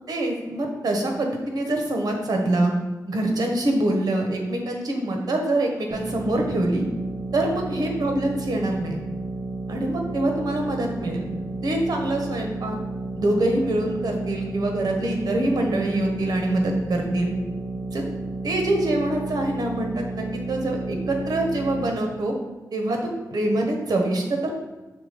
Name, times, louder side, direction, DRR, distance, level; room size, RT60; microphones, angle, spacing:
voice 1, 0.1-2.7 3.1-6.9 7.3-9.0 9.7-11.3 11.6-12.8 13.1-17.3 17.9-18.0 18.4-22.3 22.7-24.5, right 1 dB, 75° right, 2 dB, 1.2 m, -25 dB
sound 1, 5.9-21.9, right 2 dB, ahead, 1.9 m, -32 dB
5.9 x 3.8 x 5.2 m, 1.2 s
wide cardioid pair, 100°, 7 cm